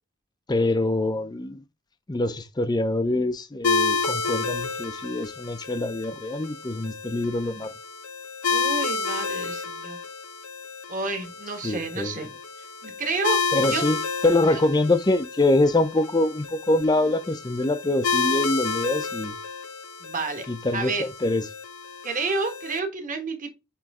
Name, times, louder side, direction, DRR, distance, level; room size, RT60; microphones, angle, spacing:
voice 1, 0.5-1.6 2.1-7.7 11.6-12.2 13.5-19.4 20.5-21.4, left 2 dB, 20° left, 0.5 m, -24 dB
sound 1, 3.6-22.8, left 5 dB, 80° left, 0.9 m, -30 dB
voice 2, 8.5-10.0 10.9-12.3 12.8-13.8 14.5-14.6 20.0-20.5 20.7-21.1 22.0-23.5, right 3 dB, 40° right, 1.4 m, -30 dB
9.0 x 3.2 x 3.6 m
head